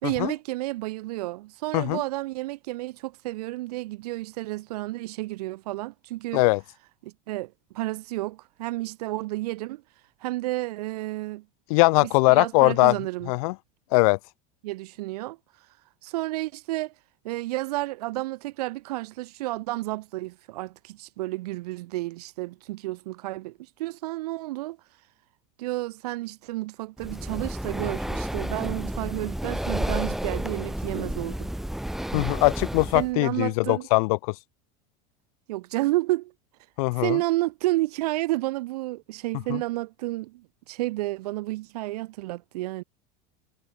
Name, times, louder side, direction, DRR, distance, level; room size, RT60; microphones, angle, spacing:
voice 1, 0.0-6.4 7.0-9.8 10.2-11.4 12.0-13.3 14.6-15.4 16.0-16.9 17.2-24.8 25.6-31.5 32.9-33.9 35.5-36.3 37.0-42.8, right 19 dB, 85° right, 5.9 m, -31 dB
voice 2, 11.7-12.9 13.3-13.5 13.9-14.2 32.1-34.3 36.8-37.2 39.5-39.6, left 26 dB, 70° left, 3.0 m, -21 dB
Breathing, 27.0-33.1, right 1 dB, ahead, 1.8 m, -31 dB
supercardioid pair, 155°, 19 cm